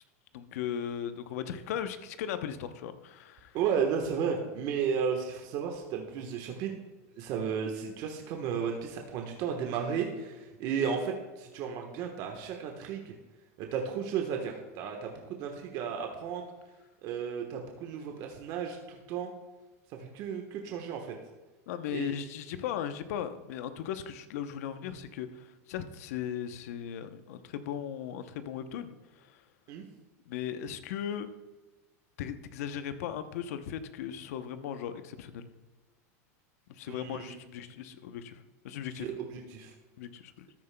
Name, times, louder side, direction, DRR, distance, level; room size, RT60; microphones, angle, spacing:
voice 1, 0.3-3.6 21.7-29.4 30.3-31.3 32.2-35.5 36.7-39.1 40.0-40.5, left 9 dB, 75° left, 10 dB, 0.8 m, -37 dB
voice 2, 3.5-6.7 7.2-13.1 13.6-16.5 17.0-19.3 20.0-21.1 21.9-22.1 29.7-29.8 36.9-37.4 39.2-39.7, right 7 dB, 55° right, 3 dB, 1.2 m, -33 dB
13.5 x 9.5 x 2.2 m, 1.2 s
supercardioid pair, 110°, 8 cm